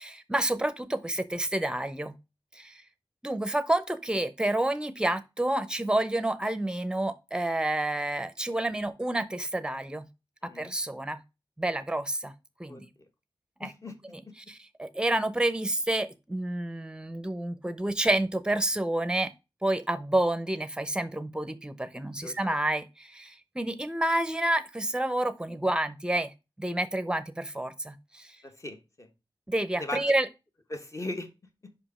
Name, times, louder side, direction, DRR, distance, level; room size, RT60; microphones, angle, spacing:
voice 1, 0.0-2.2 2.5-2.8 3.2-10.1 10.4-11.2 11.6-12.3 12.6-12.9 13.6-13.7 14.5-19.3 19.6-28.3 29.5-30.3, right 1 dB, 10° right, 0.7 m, -29 dB
voice 2, 10.4-10.7 12.7-12.8 13.6-13.9 14.3-14.4 22.2-22.5 28.4-29.1 29.8-30.1 30.7-31.3 31.6-31.7, left 2 dB, 35° left, 1.3 m, -38 dB
5.5 x 5.2 x 4.3 m
wide cardioid pair, 125°, 9 cm